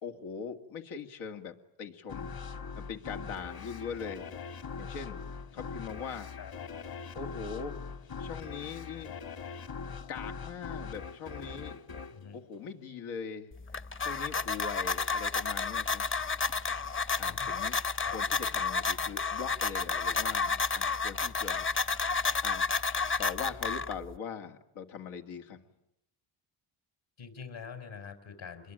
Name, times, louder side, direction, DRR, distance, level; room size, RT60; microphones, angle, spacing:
voice 1, 0.0-2.3 2.8-4.3 4.8-5.2 5.5-6.3 7.1-7.8 8.2-9.1 10.1-11.8 12.3-13.5 14.0-16.0 17.2-17.8 18.1-21.7 22.4-22.6 23.2-25.7, left 6 dB, 85° left, 5 dB, 2.4 m, -41 dB
sound 1, 2.1-13.3, left 5 dB, 45° left, 2.0 m, -42 dB
sound 2, 13.5-24.2, left 4 dB, 25° left, 0.9 m, -31 dB
voice 2, 17.2-17.6 18.0-18.1 27.2-28.7, left 6 dB, 65° left, 8 dB, 5.3 m, -45 dB
27.0 x 22.5 x 9.0 m, 0.85 s
cardioid pair, 75°, 48 cm